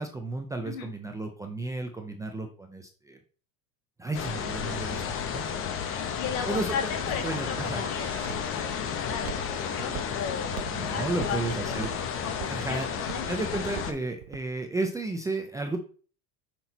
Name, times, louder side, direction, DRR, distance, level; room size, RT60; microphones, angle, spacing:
voice 1, 0.0-3.2 4.0-5.0 5.3-5.4 6.5-6.9 7.2-7.8 10.7-11.9 12.5-12.9 13.3-15.8, right 2 dB, 10° right, 4 dB, 0.4 m, -33 dB
sound 1, 4.1-13.9, left 7 dB, 30° left, 0.7 m, -32 dB
voice 2, 6.2-10.6 10.9-11.4 11.7-11.8 12.2-13.3, left 7 dB, 80° left, 4 dB, 1.8 m, -36 dB
Walk footsteps, 6.3-14.5, right 12 dB, 80° right, 0.7 m, -42 dB
6.0 x 4.2 x 4.0 m, 0.40 s
cardioid pair, 150°, 42 cm